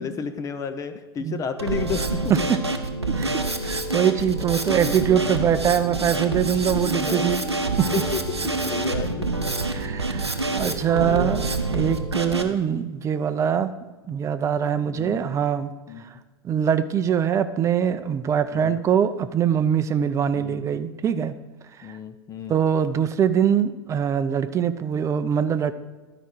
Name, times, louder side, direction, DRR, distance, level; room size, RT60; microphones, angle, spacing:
voice 1, 0.0-2.5 4.4-5.2 5.8-6.1 6.7-9.3 9.9-10.1 10.6-11.3 14.9-15.3 15.9-16.2 18.5-18.8 20.3-20.6 21.8-22.6, left 6 dB, 25° left, 9 dB, 0.6 m, -33 dB
Drum kit, 1.6-12.4, right 2 dB, 90° right, 0.7 m, -26 dB
voice 2, 3.2-7.4 7.8-7.9 9.7-13.7 14.1-15.7 16.4-21.3 22.5-25.7, right 8 dB, 20° right, 11 dB, 0.5 m, -23 dB
12.0 x 4.9 x 4.5 m, 1.2 s
figure-of-eight pair, 85°, 14 cm